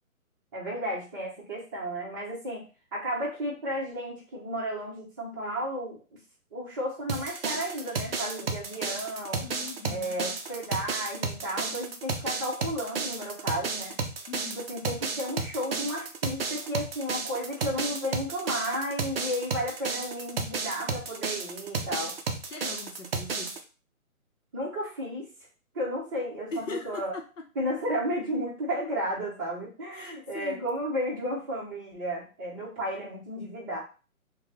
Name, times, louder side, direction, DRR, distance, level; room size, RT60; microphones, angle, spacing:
voice 1, 0.5-2.6 2.9-6.0 6.5-9.5 9.9-14.0 14.5-22.1 24.5-25.3 25.7-27.1 27.6-33.8, equal, 15° right, -5 dB, 0.8 m, -33 dB
sound 1, 7.1-23.6, right 4 dB, 45° right, 0.5 m, -33 dB
voice 2, 9.4-10.2 14.3-14.6 22.5-23.6 26.5-27.5 29.9-30.7, left 4 dB, 60° left, 2 dB, 0.8 m, -40 dB
3.4 x 2.2 x 3.2 m, 0.34 s
hypercardioid pair, 155°, 42 cm